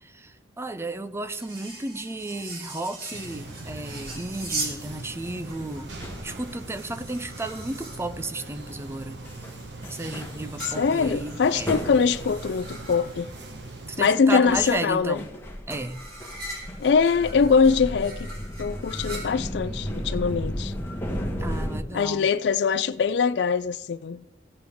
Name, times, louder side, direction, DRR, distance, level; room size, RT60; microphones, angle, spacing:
voice 1, 0.0-9.2 9.9-11.8 13.9-15.3 15.7-16.0 21.4-22.3, right 2 dB, 15° right, 0.5 m, -33 dB
sound 1, 1.3-4.8 5.5-8.1 10.6-13.2 15.7-19.7, right 2 dB, 55° right, 3.2 m, -40 dB
sound 2, 3.1-14.0, right 2 dB, 80° right, 1.3 m, -41 dB
sound 3, 3.5-4.3 4.7-5.0 5.7-6.6 7.7-7.9 8.4-8.9 9.2-9.6 9.8-13.9 14.5-21.8, equal, 15° left, 1.4 m, -35 dB
voice 2, 10.6-13.3 14.0-15.2 16.8-18.3 18.6-20.7 21.9-24.2, left 5 dB, 65° left, 0.4 m, -22 dB
16.0 x 7.7 x 3.5 m
head